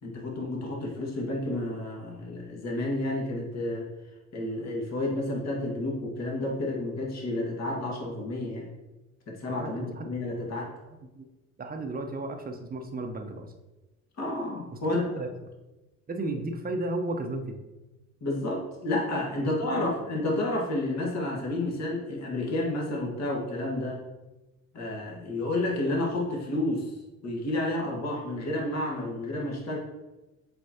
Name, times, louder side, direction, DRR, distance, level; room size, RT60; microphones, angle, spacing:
voice 1, 0.0-3.9 4.3-8.7 9.3-10.7 14.2-15.0 18.2-24.0 24.7-27.0 27.2-29.8, left 1 dB, 40° left, -1 dB, 1.9 m, -30 dB
voice 2, 9.6-10.1 11.0-11.3 11.6-13.5 14.7-15.3 16.1-17.5 19.4-19.9, right 2 dB, 20° right, 4 dB, 1.0 m, -34 dB
7.8 x 4.4 x 2.9 m, 1.1 s
hypercardioid pair, 60°, 40 cm